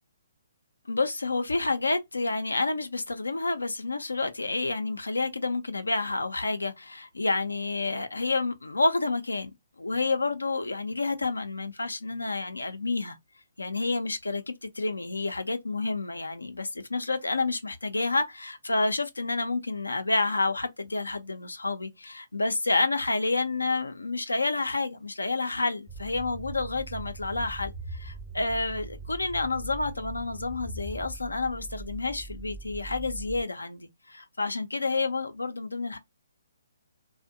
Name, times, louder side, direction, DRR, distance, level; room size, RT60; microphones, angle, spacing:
voice 1, 0.9-9.5 9.8-13.2 13.6-36.0, left 3 dB, 85° left, 0.4 m, -29 dB
sound 1, 25.9-33.4, right 3 dB, 5° right, 0.5 m, -41 dB
2.5 x 2.1 x 2.5 m
figure-of-eight pair, 135°, 0 cm